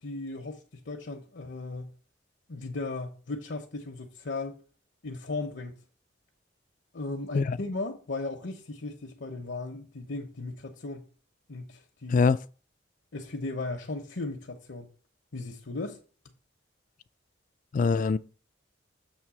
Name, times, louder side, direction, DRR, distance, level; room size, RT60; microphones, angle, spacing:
voice 1, 0.0-1.9 2.5-4.6 5.0-5.8 6.9-11.1 11.5-12.3 13.1-14.9 15.3-16.0, left 2 dB, 70° left, 0.9 m, -36 dB
voice 2, 17.7-18.2, left 4 dB, 45° left, 0.3 m, -23 dB
7.3 x 3.2 x 6.0 m
head